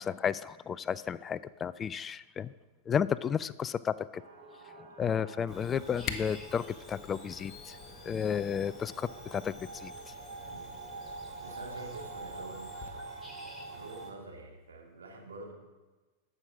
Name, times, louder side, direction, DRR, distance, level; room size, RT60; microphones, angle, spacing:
voice 1, 0.0-2.5 2.9-4.2 4.8-7.8 8.0-9.9, left 7 dB, 25° left, 17 dB, 0.3 m, -33 dB
sound 1, 4.1-14.1, right 3 dB, 45° right, 4.3 m, -46 dB
Camera, 5.5-12.9, left 8 dB, 40° left, 0.9 m, -47 dB
sound 2, 5.5-14.1, left 1 dB, ahead, 2.6 m, -53 dB
voice 2, 10.5-10.8 11.4-15.5, right 2 dB, 75° right, 1 dB, 2.3 m, -47 dB
11.5 x 6.5 x 6.1 m, 1.2 s
figure-of-eight pair, 95°, 0 cm